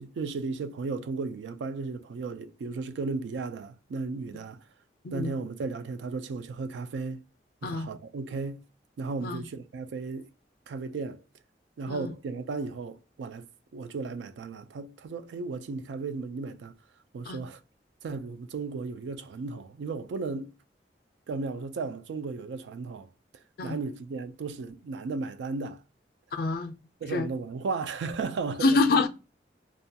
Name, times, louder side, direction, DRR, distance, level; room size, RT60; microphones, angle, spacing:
voice 1, 0.0-4.6 5.1-7.2 7.6-8.6 9.0-10.3 10.7-11.2 11.8-13.5 13.7-16.7 17.1-17.6 18.0-20.5 21.3-23.1 23.6-25.8 27.0-28.9, right 4 dB, 80° right, 0.3 m, -35 dB
voice 2, 26.3-26.7 27.1-27.3 28.6-29.1, left 3 dB, 55° left, 0.4 m, -26 dB
2.3 x 2.2 x 2.7 m
head